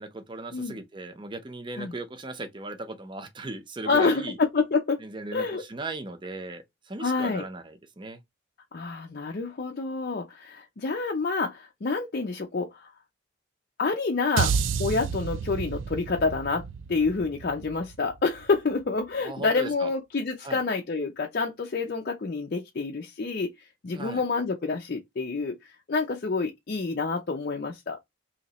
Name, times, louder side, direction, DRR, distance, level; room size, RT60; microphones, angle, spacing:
voice 1, 0.0-4.4 5.0-8.2 19.2-19.9 20.4-20.6 23.9-24.2, right 2 dB, 25° right, 0.6 m, -37 dB
voice 2, 3.9-5.0 5.3-5.6 7.0-7.5 8.7-12.9 13.8-16.6 16.9-23.5 23.8-25.6 25.9-28.0, left 4 dB, 50° left, 0.5 m, -28 dB
sound 1, 14.4-18.7, right 6 dB, 75° right, 0.4 m, -31 dB
3.0 x 2.8 x 4.0 m
head